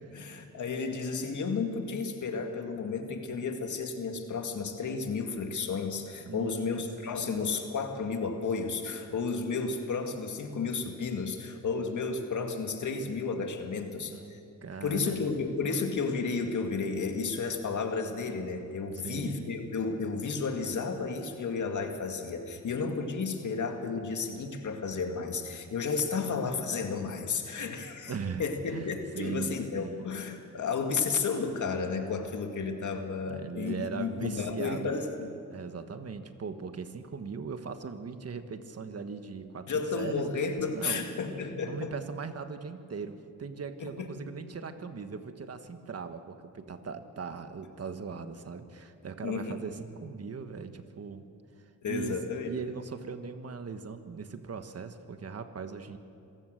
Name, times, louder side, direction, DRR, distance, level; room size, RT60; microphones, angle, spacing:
voice 1, 0.0-14.4 14.8-28.1 28.4-35.3 39.7-41.9 43.8-44.3 49.2-49.6 51.8-52.5, left 4 dB, 70° left, 4 dB, 2.1 m, -32 dB
voice 2, 6.3-6.8 14.0-15.4 18.9-19.6 28.1-28.4 28.7-28.9 29.1-30.0 33.3-35.0 35.5-40.2 40.7-41.1 41.6-51.3 51.6-56.0, right 5 dB, 50° right, 9 dB, 1.4 m, -39 dB
27.0 x 15.5 x 6.5 m, 2.5 s
cardioid pair, 85°, 31 cm